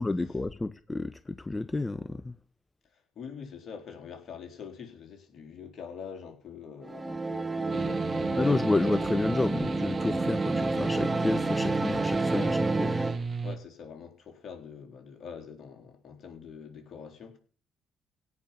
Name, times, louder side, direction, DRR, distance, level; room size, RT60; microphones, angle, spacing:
voice 1, 0.0-2.3 8.4-12.5 12.8-12.9, left 2 dB, 20° left, 0.7 m, -30 dB
voice 2, 2.9-8.9 12.3-12.6 12.9-13.2 13.4-17.4, left 6 dB, 55° left, 3.8 m, -44 dB
sound 1, 6.8-13.2, right 2 dB, 20° right, 1.3 m, -29 dB
sound 2, 7.7-13.6, right 5 dB, 45° right, 1.4 m, -36 dB
17.0 x 5.7 x 8.2 m
hypercardioid pair, 50°, 0 cm